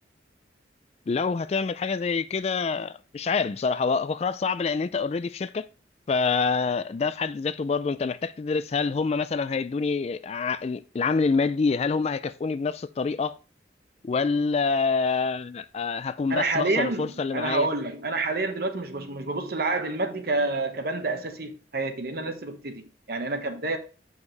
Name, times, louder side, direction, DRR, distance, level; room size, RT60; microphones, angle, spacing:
voice 1, 1.1-5.7 6.1-13.4 14.0-17.7, left 4 dB, 35° left, 0.3 m, -26 dB
voice 2, 16.3-23.8, right 2 dB, 60° right, 1.1 m, -28 dB
8.0 x 5.4 x 3.2 m
head